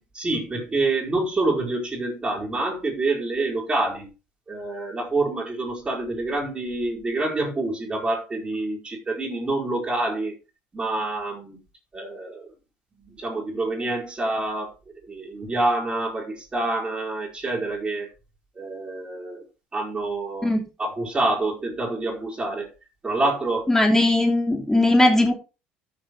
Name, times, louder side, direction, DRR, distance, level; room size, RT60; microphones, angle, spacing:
voice 1, 0.1-4.1 4.5-10.3 10.7-11.6 11.9-12.5 13.0-14.7 15.1-18.1 18.5-19.4 19.7-20.5 20.8-22.7 23.0-23.7, right 2 dB, 25° right, 5.0 m, -27 dB
voice 2, 23.7-25.3, left 1 dB, 10° left, 3.0 m, -18 dB
13.5 x 7.1 x 3.1 m
hypercardioid pair, 75°, 5 cm